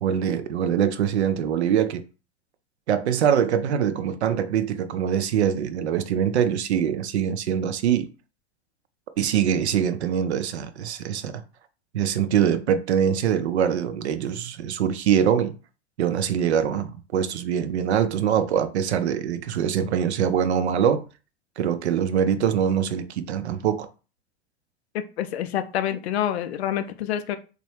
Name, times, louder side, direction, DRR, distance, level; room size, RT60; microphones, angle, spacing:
voice 1, 0.0-2.0 2.9-8.1 9.2-11.4 11.9-15.5 16.0-21.0 21.6-23.9, right 8 dB, 70° right, 0.5 m, -23 dB
voice 2, 25.2-27.4, left 10 dB, 65° left, 0.5 m, -27 dB
3.0 x 2.2 x 3.2 m
figure-of-eight pair, 85°, 34 cm